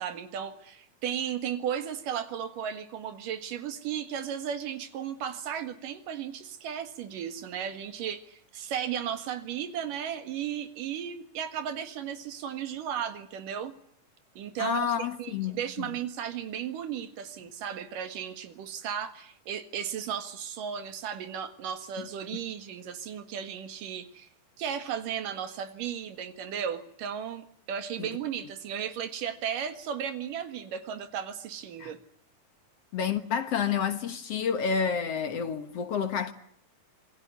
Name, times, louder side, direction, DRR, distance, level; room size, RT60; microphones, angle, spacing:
voice 1, 0.0-13.7 14.4-24.3 24.6-32.0, right 8 dB, 80° right, 3.4 m, -35 dB
voice 2, 14.6-15.9 28.0-28.1 31.8-31.9 32.9-36.3, left 7 dB, 55° left, 2.2 m, -29 dB
27.0 x 20.5 x 9.4 m
omnidirectional pair, 3.8 m